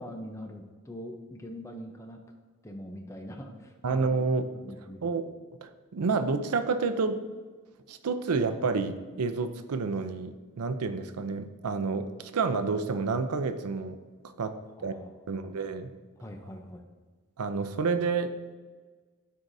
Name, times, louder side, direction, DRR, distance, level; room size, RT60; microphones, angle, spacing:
voice 1, 0.0-2.2 2.6-4.1 4.5-5.1 14.8-15.5 16.2-16.8, equal, 15° left, 3 dB, 0.6 m, -43 dB
voice 2, 3.8-4.5 5.0-5.3 5.6-7.2 7.9-14.0 14.4-14.6 14.8-14.9 15.3-15.9 17.4-18.3, right 4 dB, 85° right, 10 dB, 0.5 m, -29 dB
12.5 x 4.7 x 2.7 m, 1.4 s
head